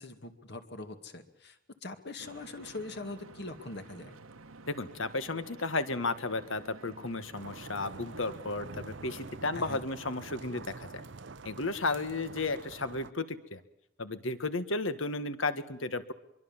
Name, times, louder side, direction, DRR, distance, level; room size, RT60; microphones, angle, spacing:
voice 1, 0.0-4.2 9.6-9.8, left 2 dB, 55° left, 7 dB, 2.1 m, -42 dB
Stream / Boat Water vehicle, 2.2-9.4, right 3 dB, 85° right, 1.4 m, -52 dB
voice 2, 4.7-11.0 11.5-13.6 14.0-16.1, left 3 dB, 70° left, 11 dB, 1.8 m, -33 dB
sound 1, 7.3-13.1, right 3 dB, 60° right, 0.8 m, -46 dB
24.5 x 23.5 x 7.4 m, 0.83 s
head